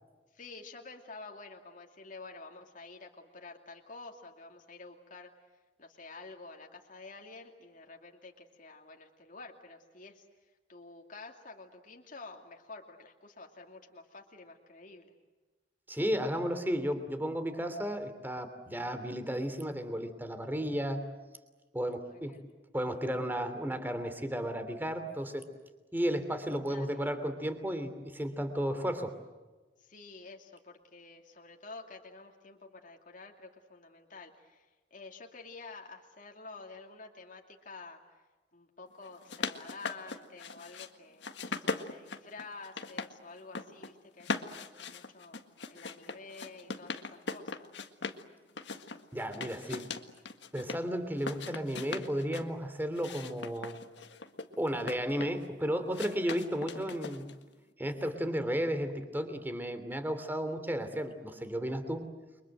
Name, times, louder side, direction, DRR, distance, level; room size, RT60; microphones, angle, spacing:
voice 1, 0.3-5.3 5.8-10.3 10.7-15.1 21.9-22.5 26.7-27.0 29.8-38.2 38.5-45.4 45.7-47.7, left 3 dB, 45° left, 2 dB, 2.6 m, -50 dB
voice 2, 15.9-21.1 21.7-22.4 22.7-25.5 25.9-29.1 49.1-49.9 50.5-53.8 54.6-57.3 57.8-62.1, equal, 10° right, 9 dB, 3.0 m, -33 dB
sound 1, 39.0-40.9 41.2-43.1 43.4-43.9 44.2-48.2 48.6-50.8 51.2-52.5 53.0-55.5 55.9-57.4, left 4 dB, 70° left, 1.8 m, -40 dB
30.0 x 24.0 x 7.9 m, 1.2 s
head